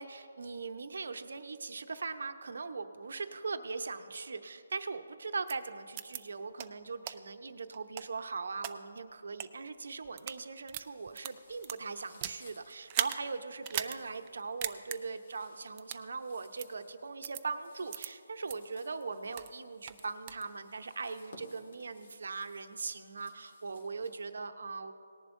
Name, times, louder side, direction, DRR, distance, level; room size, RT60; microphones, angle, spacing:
voice 1, 0.0-24.9, right 4 dB, 55° right, 8 dB, 0.8 m, -40 dB
various clicks, 5.5-5.6 6.0-6.2 6.6-6.7 7.1-7.2 7.7-8.7 9.3-9.5 10.0-10.4 10.7-12.4 12.9-13.2 13.6-14.0 14.3-14.4 14.6-15.0 15.8-16.1 16.6-16.7 17.2-17.4 17.9-18.1 18.5-18.6 19.0-19.5 19.9-20.4, right 12 dB, 15° right, 0.3 m, -37 dB
sound 1, 10.9-24.3, left 2 dB, 45° left, 2.2 m, -61 dB
19.0 x 10.5 x 2.6 m, 2.5 s
hypercardioid pair, 175°, 0 cm